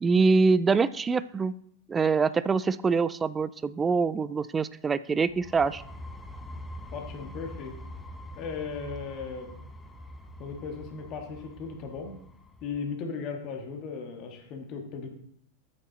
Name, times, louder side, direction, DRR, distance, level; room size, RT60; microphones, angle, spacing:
voice 1, 0.0-1.5 1.9-5.8, right 4 dB, 15° right, 17 dB, 0.3 m, -24 dB
sound 1, 5.3-12.9, left 1 dB, 10° left, 0.7 m, -44 dB
voice 2, 6.9-7.8 8.4-9.5 10.4-12.2 12.6-15.1, left 5 dB, 40° left, 3 dB, 1.5 m, -37 dB
8.5 x 6.3 x 4.0 m, 0.68 s
figure-of-eight pair, 90°, 0 cm